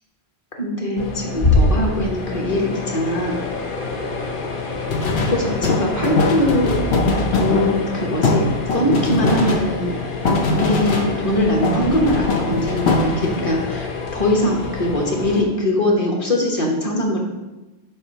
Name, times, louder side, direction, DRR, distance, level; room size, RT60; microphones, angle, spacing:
voice 1, 0.6-3.4 5.1-6.8 7.3-9.9 10.5-17.2, left 1 dB, 35° left, -1 dB, 1.2 m, -22 dB
sound 1, 1.0-15.4, left 3 dB, 55° left, 1.0 m, -26 dB
sound 2, 4.9-11.4 11.6-13.5, left 2 dB, 80° left, 1.2 m, -21 dB
7.2 x 2.7 x 5.6 m, 1.1 s
omnidirectional pair, 1.1 m